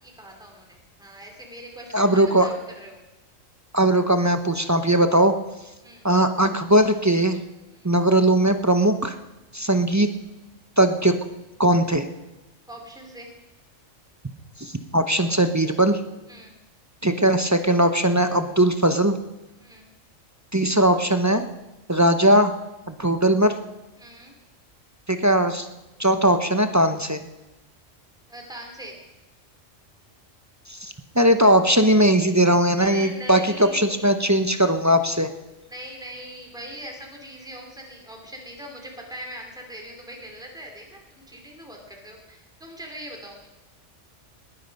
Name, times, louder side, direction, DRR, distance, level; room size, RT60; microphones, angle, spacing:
voice 1, 0.0-3.0 5.8-6.1 7.7-7.9 12.7-13.3 16.3-16.6 19.6-19.9 24.0-24.3 28.3-29.0 32.8-34.2 35.7-43.5, equal, 5° right, 1 dB, 2.6 m, -41 dB
voice 2, 1.9-2.5 3.7-5.3 6.0-7.4 7.8-9.1 9.5-10.1 10.8-11.1 11.6-12.0 14.6-16.0 17.0-19.1 20.5-21.5 21.9-22.5 22.9-23.5 25.1-25.7 26.0-27.3 30.7-35.3, right 1 dB, 20° right, 8 dB, 0.5 m, -19 dB
19.5 x 10.0 x 5.3 m, 1.0 s
omnidirectional pair, 1.3 m